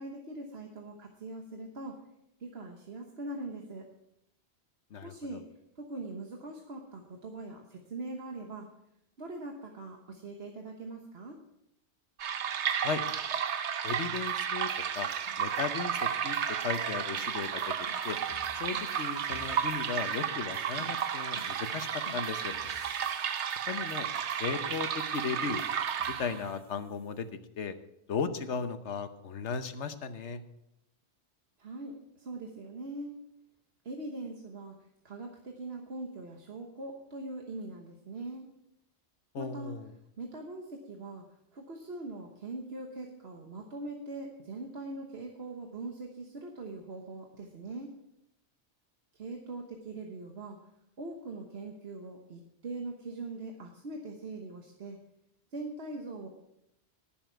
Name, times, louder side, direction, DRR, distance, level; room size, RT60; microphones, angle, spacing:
voice 1, 0.0-2.0 2.4-3.9 5.0-5.4 5.8-8.7 9.2-11.4 31.6-33.1 33.8-34.8 35.0-38.5 39.4-39.7 40.2-41.2 41.5-47.9 49.1-50.6 51.0-55.0 55.5-56.3, right 2 dB, 65° right, 2 dB, 1.4 m, -42 dB
sound 1, 12.2-26.5, right 8 dB, 80° right, 1.1 m, -33 dB
sound 2, 12.7-27.2, left 3 dB, 55° left, 1.8 m, -55 dB
voice 2, 13.8-15.1 15.4-16.4 16.6-17.7 18.0-18.2 18.5-22.5 23.6-24.1 24.4-25.6 26.1-27.3 27.6-27.8 28.1-30.4 39.3-39.9, left 5 dB, 85° left, 10 dB, 1.3 m, -36 dB
18.5 x 7.2 x 4.6 m, 0.83 s
omnidirectional pair, 1.1 m